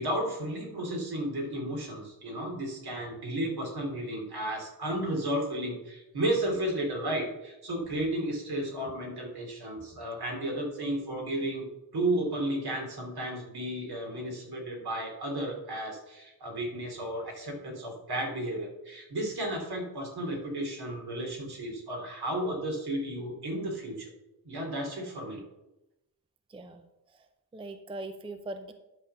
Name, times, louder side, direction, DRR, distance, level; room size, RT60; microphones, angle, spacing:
voice 1, 0.0-24.1 24.4-25.4, right 1 dB, 70° right, 0 dB, 2.9 m, -33 dB
voice 2, 26.5-26.8 27.1-27.3 27.5-28.7, right 2 dB, 15° right, 8 dB, 0.5 m, -40 dB
11.0 x 3.9 x 6.7 m, 0.94 s
wide cardioid pair, 155°, 39 cm